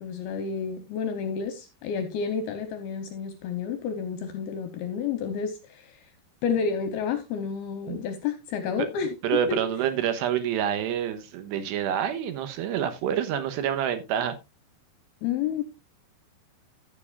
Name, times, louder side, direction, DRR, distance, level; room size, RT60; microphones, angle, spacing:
voice 1, 0.0-6.1 6.4-9.1 9.5-9.6 15.2-15.6, left 6 dB, 75° left, 2.5 m, -30 dB
voice 2, 9.2-14.4, right 9 dB, 80° right, 3.1 m, -27 dB
15.5 x 7.2 x 2.4 m
omnidirectional pair, 5.0 m